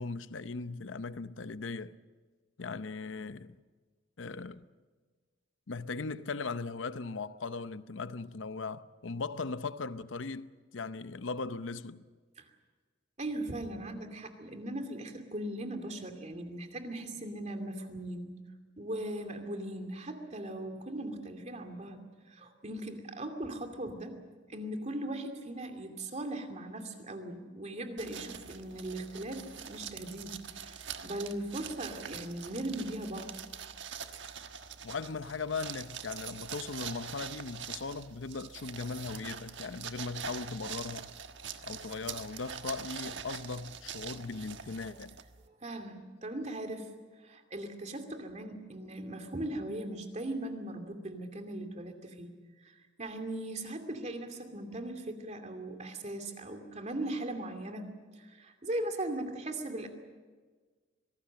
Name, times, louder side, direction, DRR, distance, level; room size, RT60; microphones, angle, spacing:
voice 1, 0.0-2.0 2.6-3.6 4.2-4.7 5.7-12.1 34.8-41.1 41.6-45.2, left 4 dB, 80° left, 0.7 m, -38 dB
voice 2, 13.2-18.4 18.8-22.0 22.3-24.2 24.5-33.4 45.6-46.9 47.2-52.3 52.6-59.9, right 1 dB, 35° right, 2.6 m, -39 dB
sound 1, 28.0-45.5, right 7 dB, 70° right, 1.4 m, -44 dB
25.5 x 19.0 x 7.7 m
head